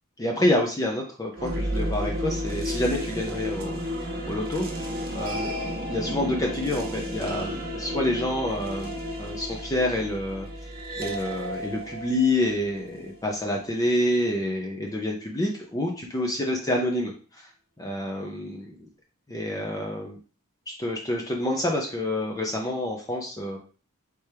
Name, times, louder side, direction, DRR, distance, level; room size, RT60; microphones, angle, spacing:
voice 1, 0.2-3.8 4.3-4.7 5.1-5.6 5.9-10.5 11.0-17.5 17.8-18.7 19.3-20.2 20.7-23.6, left 1 dB, 15° left, 0 dB, 0.5 m, -28 dB
sound 1, 1.3-13.5, equal, 45° right, 0.9 m, -32 dB
4.4 x 3.3 x 3.3 m, 0.39 s
head